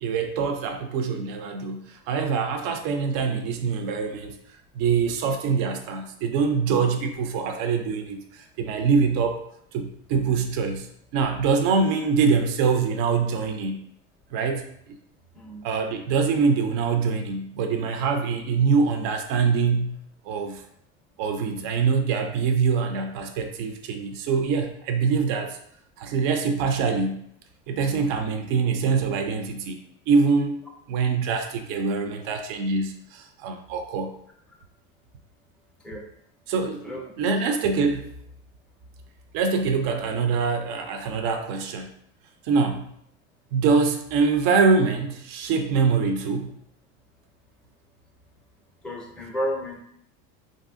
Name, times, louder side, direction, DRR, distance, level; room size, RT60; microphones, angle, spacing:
voice 1, 0.0-4.4 4.7-9.4 9.7-10.9 11.1-13.8 14.3-15.0 15.6-20.0 20.3-20.6 21.2-25.6 26.0-27.2 27.7-29.8 30.1-30.6 30.9-34.1 36.5-38.0 39.3-41.9 42.4-42.8 43.5-46.5, right 5 dB, 55° right, 6 dB, 0.5 m, -24 dB
voice 2, 48.8-49.8, equal, ahead, -1 dB, 0.4 m, -31 dB
3.0 x 2.6 x 2.5 m, 0.70 s
supercardioid pair, 115°, 41 cm